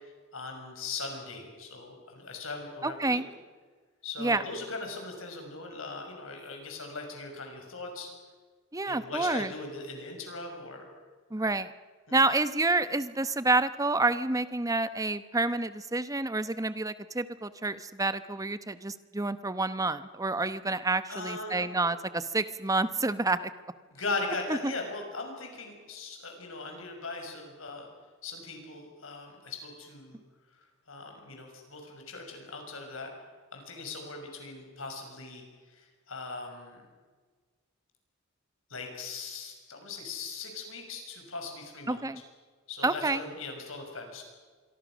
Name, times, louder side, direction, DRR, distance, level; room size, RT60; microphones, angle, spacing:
voice 1, 0.3-3.2 4.0-8.1 8.8-10.9 12.1-12.2 21.1-21.7 23.9-27.9 28.2-30.2 30.5-33.1 33.5-36.8 38.7-42.0 42.7-44.2, left 3 dB, 80° left, 3 dB, 6.4 m, -39 dB
voice 2, 2.8-3.3 4.2-4.4 8.7-9.5 11.3-11.7 12.1-23.5 24.6-24.7 41.9-42.2 42.8-43.2, right 2 dB, 15° right, 13 dB, 0.9 m, -28 dB
26.5 x 23.0 x 6.3 m, 1.5 s
head